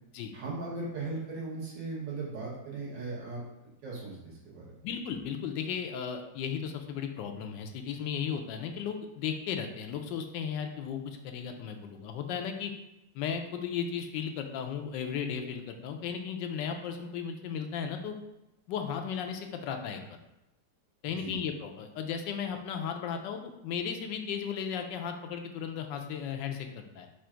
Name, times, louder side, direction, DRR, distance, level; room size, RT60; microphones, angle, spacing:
voice 1, 0.3-3.4 3.8-4.6 21.2-21.3, right 3 dB, 85° right, -5 dB, 2.0 m, -38 dB
voice 2, 4.8-12.7 13.1-18.1 18.7-20.0 21.0-27.1, left 7 dB, 90° left, 5 dB, 1.3 m, -35 dB
4.9 x 2.5 x 4.4 m, 0.91 s
omnidirectional pair, 1.9 m